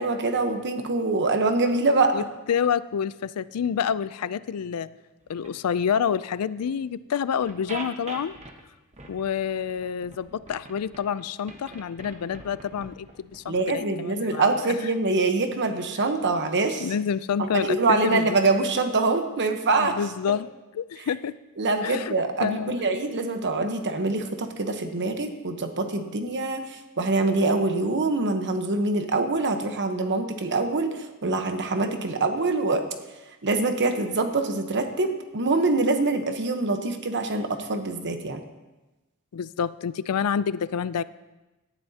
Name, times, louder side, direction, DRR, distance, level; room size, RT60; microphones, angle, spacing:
voice 1, 0.0-2.2 13.5-16.9 17.4-20.0 21.6-32.8 33.4-38.4, right 3 dB, 55° right, 6 dB, 1.0 m, -24 dB
voice 2, 2.1-4.9 5.3-8.4 9.1-14.8 16.8-18.4 19.8-20.5 20.7-21.3 21.8-22.2 22.4-22.9 39.3-41.0, left 7 dB, 80° left, 17 dB, 0.4 m, -28 dB
sound 1, 5.2-5.7 6.8-6.9 7.4-8.6 8.9-11.2 11.5-13.7, right 2 dB, 30° right, 1.2 m, -42 dB
17.5 x 11.5 x 2.8 m, 1.1 s
head